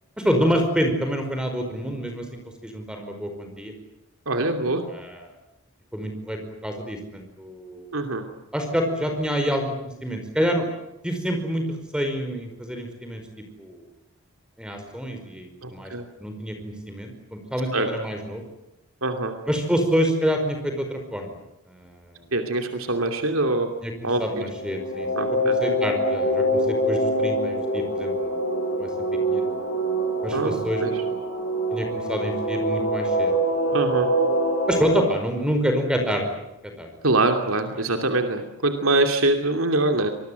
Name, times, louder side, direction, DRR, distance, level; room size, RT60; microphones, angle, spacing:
voice 1, 0.2-3.7 4.8-5.4 5.9-7.9 8.5-10.7 11.0-11.7 11.9-13.2 13.6-13.9 14.6-15.9 16.2-18.4 19.5-21.4 21.7-22.3 23.8-25.1 25.4-28.9 29.3-29.5 30.2-30.8 31.7-33.3 33.7-33.8 34.7-36.9, equal, 5° right, 5 dB, 5.0 m, -27 dB
voice 2, 4.3-4.8 7.9-8.2 15.6-16.1 17.7-17.9 19.0-19.3 22.3-23.7 24.0-24.4 25.1-25.6 30.3-31.0 33.7-34.1 37.0-40.1, right 2 dB, 85° right, 5 dB, 2.7 m, -24 dB
sound 1, 24.3-35.0, right 1 dB, 65° left, 4.4 m, -24 dB
26.0 x 21.0 x 9.4 m, 0.89 s
head